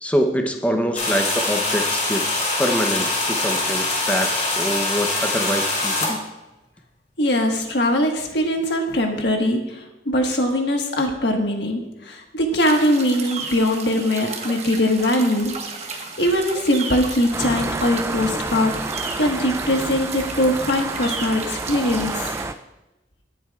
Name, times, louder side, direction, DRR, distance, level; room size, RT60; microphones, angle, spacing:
voice 1, 0.0-6.2, equal, 10° left, 4 dB, 0.8 m, -25 dB
sound 1, 1.0-6.1, left 2 dB, 40° left, 3.3 m, -23 dB
voice 2, 7.2-15.5 15.9-18.7 19.2-22.3, left 1 dB, 70° left, 2 dB, 1.5 m, -21 dB
sound 2, 12.6-22.5, right 4 dB, 40° right, 1.2 m, -34 dB
sound 3, 17.3-22.5, right 3 dB, 15° right, 0.3 m, -29 dB
18.0 x 7.6 x 2.4 m, 1.0 s
head